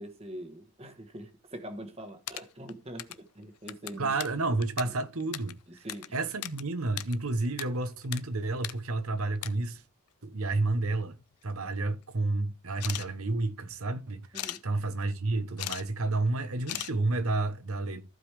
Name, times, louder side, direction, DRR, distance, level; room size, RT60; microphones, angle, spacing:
voice 1, 0.0-4.1 4.8-4.9 5.8-6.1 14.3-14.6, right 1 dB, 25° right, 1.3 m, -43 dB
sound 1, 2.0-3.3 3.6-6.6 6.9-7.7 7.9-8.2 8.5-8.8 9.2-9.5 10.5-10.6 11.0-11.6 12.7-13.1 14.3-14.6 15.4-15.8 16.1-16.2 16.7-16.9, left 14 dB, 85° left, 0.6 m, -38 dB
voice 2, 4.0-5.9 6.1-9.8 10.2-11.2 11.4-18.0, right 2 dB, 75° right, 1.1 m, -30 dB
14.5 x 5.2 x 3.4 m
head